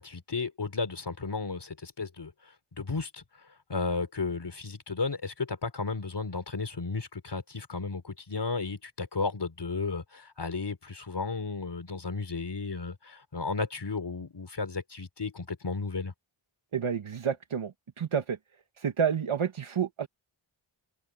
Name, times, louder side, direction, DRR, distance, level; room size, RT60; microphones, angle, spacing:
voice 1, 0.0-2.3 2.8-3.2 3.7-16.1, left 4 dB, 55° left, 3.8 m, -34 dB
voice 2, 16.7-18.4 18.8-20.1, right 7 dB, 75° right, 1.8 m, -29 dB
open air
wide cardioid pair, 65°, 49 cm